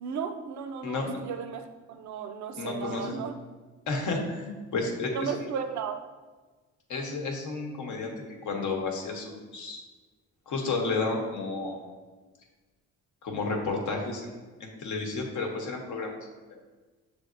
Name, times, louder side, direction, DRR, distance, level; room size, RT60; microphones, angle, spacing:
voice 1, 0.0-3.3 5.1-6.0, right 7 dB, 65° right, 8 dB, 0.5 m, -35 dB
voice 2, 0.8-1.2 2.5-3.2 3.9-5.5 6.9-8.1 8.4-9.8 10.5-11.9 13.2-14.3 14.6-16.2, left 3 dB, 75° left, 2 dB, 0.9 m, -32 dB
6.2 x 3.4 x 2.5 m, 1.3 s
cardioid pair, 105°, 30 cm